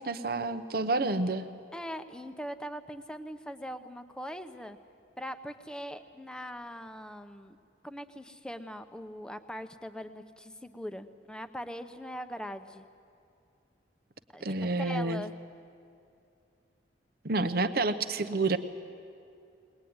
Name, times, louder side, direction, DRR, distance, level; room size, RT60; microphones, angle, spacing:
voice 1, 0.0-1.5 14.4-15.2 17.2-18.6, right 3 dB, 50° right, 9 dB, 0.8 m, -29 dB
voice 2, 1.7-4.8 5.2-7.6 7.8-12.8 14.3-14.4 14.8-15.3 17.5-17.6, equal, 5° left, 9 dB, 0.8 m, -41 dB
21.0 x 20.5 x 9.5 m, 2.6 s
head